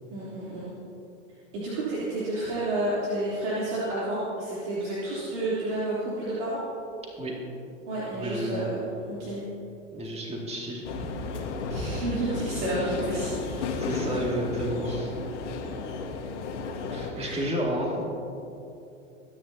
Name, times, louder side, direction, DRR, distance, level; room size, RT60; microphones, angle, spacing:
voice 1, 0.1-0.7 1.5-6.6 7.9-9.4 11.7-14.2 17.1-17.5, right 1 dB, 65° right, -9 dB, 3.3 m, -30 dB
voice 2, 8.1-8.7 9.9-11.1 13.6-15.1 16.9-18.0, equal, 15° right, -2 dB, 2.3 m, -31 dB
sound 1, 10.8-17.1, left 4 dB, 70° left, 1.6 m, -33 dB
22.0 x 9.9 x 2.8 m, 2.8 s
figure-of-eight pair, 85°, 38 cm